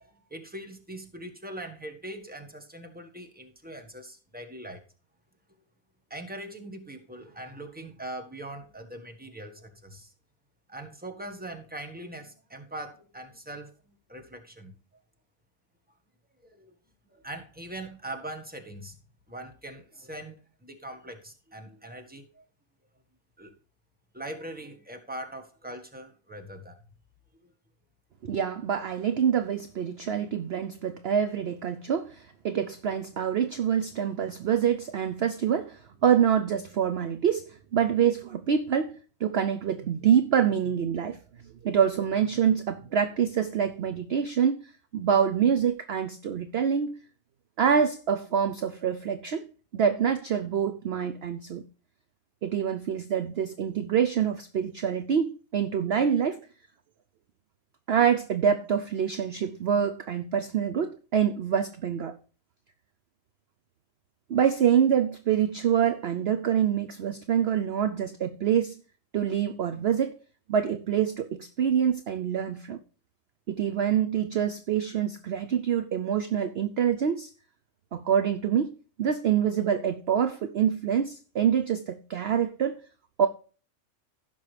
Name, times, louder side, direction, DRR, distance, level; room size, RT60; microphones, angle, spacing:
voice 1, 0.0-4.8 6.1-10.1 10.7-13.7 14.1-14.7 16.4-16.7 17.1-18.9 19.3-22.4 23.4-23.5 24.1-26.8, right 1 dB, 5° right, 1.4 m, -41 dB
voice 2, 28.2-41.2 41.6-44.7 44.9-47.0 47.6-49.5 49.7-51.6 52.4-56.4 57.9-62.2 64.3-68.8 69.1-70.2 70.5-72.8 73.5-77.3 77.9-82.8 83.2-83.3, right 8 dB, 55° right, 0.8 m, -26 dB
16.0 x 6.0 x 3.3 m
omnidirectional pair, 1.5 m